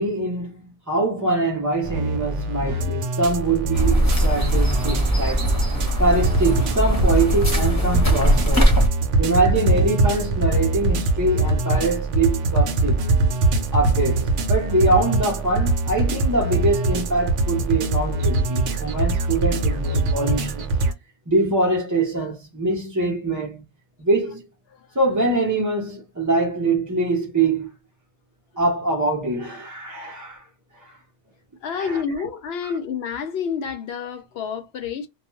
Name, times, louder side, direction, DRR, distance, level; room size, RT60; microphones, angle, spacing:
voice 1, 0.0-5.5 6.0-8.8 9.2-13.1 13.7-20.7 21.3-23.6 24.0-24.4 24.9-27.7 28.5-30.4 30.8-30.9 31.7-32.0, right 2 dB, 25° right, 0.5 m, -23 dB
sound 1, 1.8-20.9, right 2 dB, 85° right, 0.9 m, -23 dB
sound 2, 3.7-8.9, equal, 15° left, 0.8 m, -20 dB
voice 2, 31.6-35.1, left 6 dB, 65° left, 0.8 m, -29 dB
2.3 x 2.2 x 3.0 m
omnidirectional pair, 1.2 m